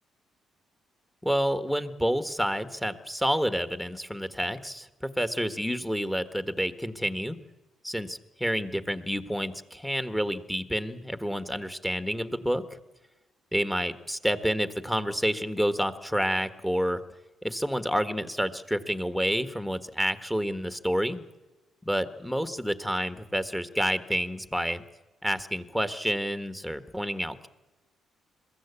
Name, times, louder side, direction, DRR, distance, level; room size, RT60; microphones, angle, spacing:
voice 1, 1.2-7.4 7.8-12.8 13.5-17.0 17.4-21.2 21.8-24.8 25.2-27.5, equal, 5° left, 10 dB, 1.5 m, -29 dB
22.0 x 15.0 x 8.4 m, 1.1 s
cardioid pair, 90°, 0 cm